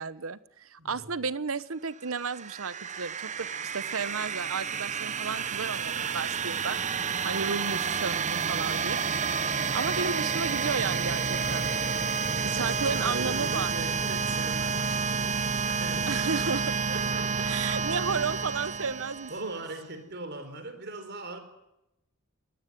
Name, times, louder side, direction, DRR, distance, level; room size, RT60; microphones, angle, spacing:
voice 1, 0.0-3.5 3.7-6.8 7.2-9.0 9.7-11.7 12.5-13.7 16.1-16.7 17.4-19.6, right 5 dB, 75° right, 16 dB, 1.0 m, -33 dB
voice 2, 0.8-1.1 12.2-16.3 16.9-17.7 18.8-21.4, right 2 dB, 50° right, 9 dB, 4.2 m, -41 dB
sound 1, 2.0-19.7, right 5 dB, 35° right, 0.9 m, -30 dB
22.0 x 18.5 x 9.3 m, 0.88 s
head